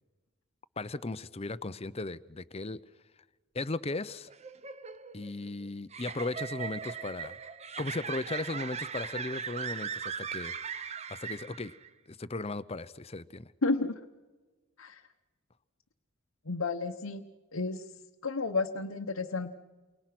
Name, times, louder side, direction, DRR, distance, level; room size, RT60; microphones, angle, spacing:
voice 1, 0.8-2.8 3.5-4.3 5.1-7.4 7.8-10.6 11.1-11.7 12.1-13.5, left 2 dB, 30° left, 15 dB, 0.7 m, -36 dB
sound 1, 4.3-11.9, right 6 dB, 30° right, 0.9 m, -39 dB
voice 2, 13.6-13.9 14.8-15.0 16.5-17.2 17.5-17.8 18.2-19.5, left 3 dB, 80° left, 3 dB, 1.1 m, -31 dB
30.0 x 23.5 x 6.1 m, 1.3 s
head